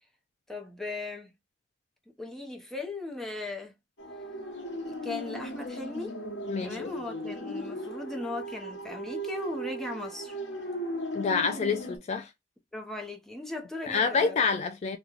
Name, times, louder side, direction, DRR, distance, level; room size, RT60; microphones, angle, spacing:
voice 1, 0.5-1.3 2.1-3.8 4.8-6.2 6.6-10.4 12.7-14.4, left 2 dB, ahead, 0.7 m, -38 dB
sound 1, 4.0-12.0, right 1 dB, 80° left, 1.0 m, -37 dB
voice 2, 6.5-6.9 11.1-12.3 13.9-15.0, left 5 dB, 35° left, 0.3 m, -27 dB
3.0 x 2.2 x 3.8 m
head